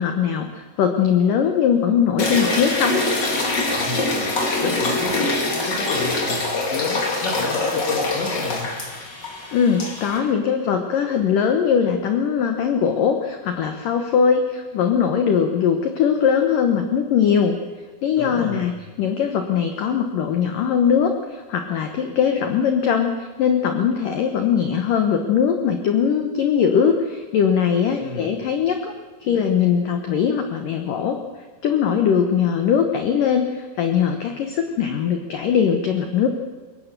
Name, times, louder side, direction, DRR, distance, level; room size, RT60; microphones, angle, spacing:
voice 1, 0.0-3.0 9.5-17.6 18.0-18.7 19.0-28.9 29.2-31.2 31.6-36.3, left 7 dB, 85° left, 6 dB, 1.9 m, -20 dB
sound 1, 2.2-10.2, left 2 dB, 30° left, 2.1 m, -24 dB
voice 2, 3.8-4.3 4.6-5.4 5.7-8.7 18.2-18.7 28.0-28.3, left 3 dB, 65° left, 3 dB, 4.6 m, -31 dB
22.5 x 19.5 x 6.8 m, 1.4 s
omnidirectional pair, 5.8 m